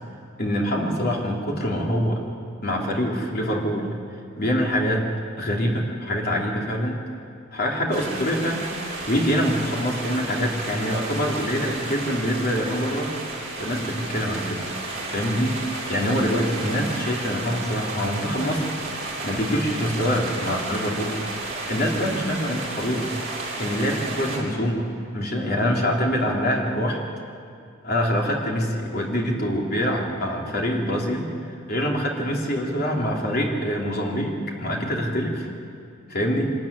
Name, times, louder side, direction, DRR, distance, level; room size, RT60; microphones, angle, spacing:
voice 1, 0.4-2.2 2.6-3.9 4.4-5.0 5.4-7.0 7.5-8.6 8.9-13.1 13.6-14.6 15.1-15.6 15.9-18.7 19.2-21.2 21.7-23.1 23.6-24.8 25.1-27.0 27.8-31.4 31.7-35.5 36.1-36.5, equal, 45° left, -1 dB, 3.3 m, -25 dB
sound 1, 7.9-24.4, right 2 dB, 30° right, 6.6 m, -32 dB
24.5 x 14.0 x 10.0 m, 2.5 s
head